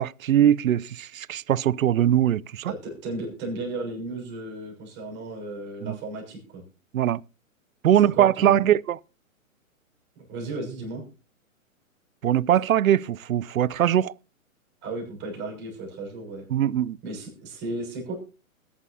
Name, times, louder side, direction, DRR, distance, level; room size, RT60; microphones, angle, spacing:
voice 1, 0.0-2.7 5.8-6.0 6.9-7.2 7.8-9.0 12.2-14.1 16.5-17.0, right 11 dB, 70° right, 0.6 m, -21 dB
voice 2, 2.7-6.6 8.1-8.7 10.2-11.0 14.8-16.4 17.0-18.1, right 2 dB, 25° right, 6.3 m, -34 dB
21.0 x 11.0 x 2.7 m
hypercardioid pair, 130°, 42 cm